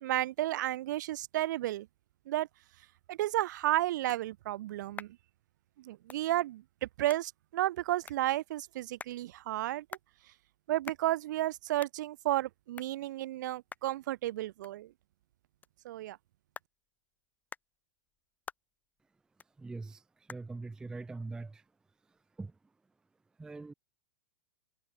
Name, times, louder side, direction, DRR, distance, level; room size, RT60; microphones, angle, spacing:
voice 1, 0.0-1.9 2.3-2.5 3.1-5.2 5.8-9.8 10.7-14.9 15.8-16.2, right 15 dB, 60° right, 1.2 m, -32 dB
sound 1, 3.2-22.5, left 5 dB, 15° left, 1.1 m, -54 dB
voice 2, 19.6-20.0 20.3-21.6 22.4-22.5 23.4-23.7, right 3 dB, 5° right, 0.4 m, -42 dB
hypercardioid pair, 105°, 11 cm